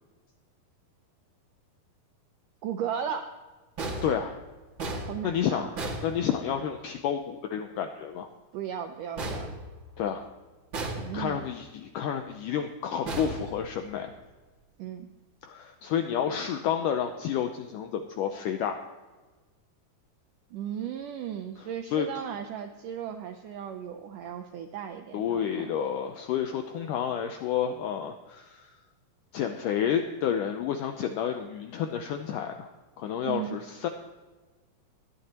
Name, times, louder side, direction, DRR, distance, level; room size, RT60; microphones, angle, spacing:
voice 1, 2.6-3.2 5.0-5.7 8.5-9.5 11.0-11.5 14.8-15.1 20.5-25.7 33.2-33.6, right 9 dB, 80° right, 6 dB, 1.8 m, -36 dB
sound 1, 3.8-6.8 9.2-10.3 10.7-11.6 13.1-14.2, right 2 dB, 40° right, 2.2 m, -36 dB
voice 2, 4.0-4.4 5.2-5.7 6.0-8.3 10.0-10.2 11.1-14.1 15.4-18.8 21.9-22.2 25.1-28.7 29.3-32.7 33.0-33.9, left 8 dB, 80° left, 5 dB, 1.8 m, -30 dB
20.5 x 11.5 x 3.0 m, 1.3 s
omnidirectional pair, 4.6 m